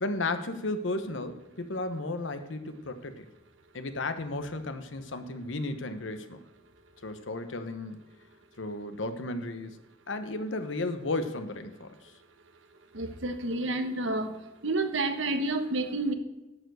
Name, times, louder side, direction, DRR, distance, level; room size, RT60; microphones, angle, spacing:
voice 1, 0.0-3.2 3.7-6.4 7.0-8.0 8.6-9.8 10.1-12.1, left 2 dB, 70° left, 9 dB, 1.1 m, -34 dB
voice 2, 12.9-14.4 14.6-16.1, right 2 dB, 75° right, 8 dB, 1.2 m, -29 dB
11.0 x 7.1 x 6.3 m, 1.0 s
head